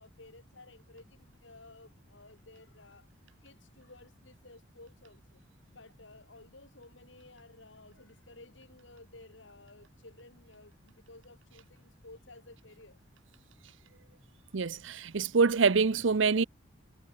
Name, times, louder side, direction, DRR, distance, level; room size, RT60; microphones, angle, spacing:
voice 1, 0.0-3.1 3.4-5.4 5.7-13.0 14.5-14.6, left 2 dB, 75° left, 4.3 m, -55 dB
voice 2, 14.5-16.4, right 4 dB, 75° right, 0.7 m, -25 dB
head